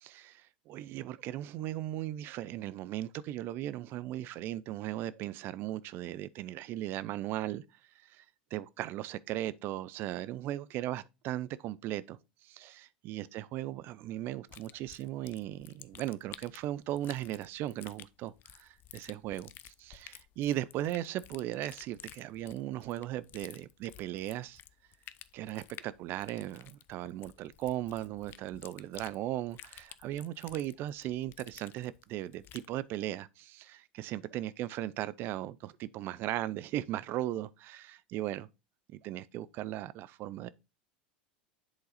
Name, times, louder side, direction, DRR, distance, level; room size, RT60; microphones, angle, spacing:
voice 1, 0.0-7.6 8.0-8.2 8.5-24.6 25.3-38.5 38.9-40.5, right 13 dB, 50° right, 0.4 m, -37 dB
sound 1, 14.5-32.7, left 12 dB, 45° left, 0.4 m, -53 dB
7.8 x 3.9 x 4.1 m
hypercardioid pair, 85°, 5 cm